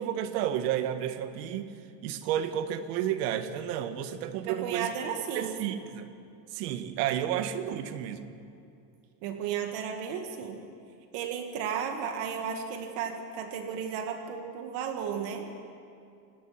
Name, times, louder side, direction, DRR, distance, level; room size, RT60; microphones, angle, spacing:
voice 1, 0.0-1.7 2.0-4.9 5.3-6.1 6.5-8.2, right 10 dB, 85° right, 8 dB, 1.9 m, -31 dB
voice 2, 4.5-5.5 9.2-10.6 11.1-15.5, right 7 dB, 65° right, 4 dB, 2.2 m, -34 dB
29.0 x 19.5 x 5.9 m, 2.5 s
cardioid pair, 170°, 48 cm